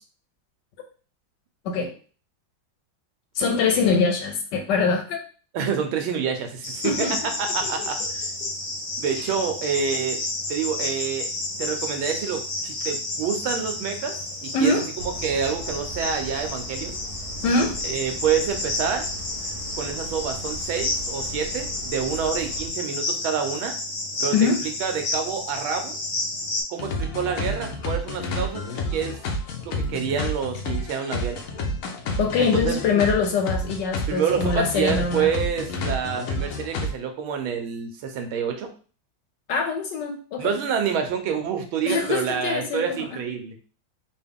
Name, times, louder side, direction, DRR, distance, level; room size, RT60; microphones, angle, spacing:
voice 1, 3.4-5.2 6.8-7.2 7.6-7.7 8.0-8.1 9.2-9.3 14.5-14.9 17.4-17.8 24.3-24.6 32.2-35.3 39.5-40.5 41.9-43.0, left 4 dB, 75° left, 4 dB, 1.1 m, -23 dB
voice 2, 5.5-7.1 7.4-8.2 9.0-10.2 10.5-11.3 11.6-14.1 14.4-14.7 15.0-17.0 17.8-19.1 19.8-23.7 24.2-26.0 26.7-29.2 29.6-31.4 32.4-32.8 34.1-38.7 40.4-43.6, right 7 dB, 85° right, 5 dB, 1.5 m, -27 dB
Cricket, 6.6-26.6, left 2 dB, 50° left, 0.8 m, -31 dB
sound 1, 13.7-14.1 14.5-14.6 15.0-22.7, right 1 dB, 70° right, 0.9 m, -39 dB
sound 2, 26.8-36.9, left 1 dB, 90° left, 0.7 m, -29 dB
3.8 x 2.3 x 3.5 m, 0.39 s
omnidirectional pair, 2.2 m